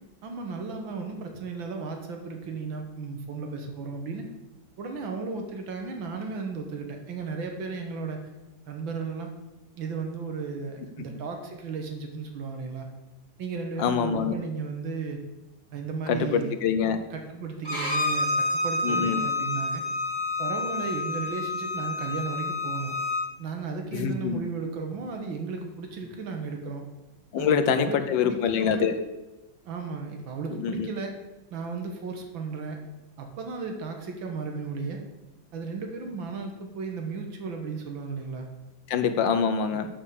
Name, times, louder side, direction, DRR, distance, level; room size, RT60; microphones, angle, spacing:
voice 1, 0.2-4.3 4.8-8.2 8.7-9.3 9.8-12.9 13.4-15.2 15.7-16.6 17.1-19.8 20.4-22.9 23.4-26.8 27.4-28.0 28.2-28.9 29.7-31.1 31.5-32.8 33.2-35.0 35.5-38.5 39.7-39.8, right 4 dB, 75° right, 3 dB, 2.0 m, -35 dB
voice 2, 13.8-14.3 16.1-17.0 18.8-19.2 23.9-24.4 27.3-29.0 30.6-30.9 38.9-39.9, left 7 dB, 75° left, 9 dB, 1.4 m, -25 dB
Bowed string instrument, 17.6-23.2, left 2 dB, 30° right, 2.3 m, -29 dB
7.1 x 7.1 x 6.8 m, 1.0 s
omnidirectional pair, 2.1 m